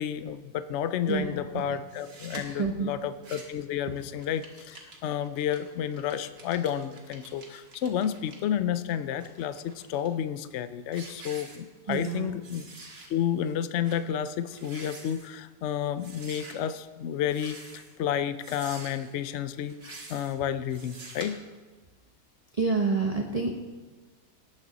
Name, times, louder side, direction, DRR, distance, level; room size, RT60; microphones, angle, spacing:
voice 1, 0.0-12.7 13.1-21.4, left 9 dB, 65° left, 12 dB, 0.7 m, -31 dB
voice 2, 1.1-1.6 2.4-2.9 11.9-12.4 22.6-23.5, right 4 dB, 30° right, 2 dB, 0.7 m, -28 dB
sound 1, 1.9-2.4 3.0-3.6 4.0-8.4 8.9-10.1 10.5-10.7 10.9-12.2 12.4-13.1 13.4-13.5 13.8-14.0 14.5-15.3 16.0-16.5 17.2-17.9 18.4-19.1 19.7-20.3 20.7-21.3, right 3 dB, 75° right, 2.2 m, -47 dB
18.5 x 7.4 x 4.0 m, 1.3 s
omnidirectional pair, 1.7 m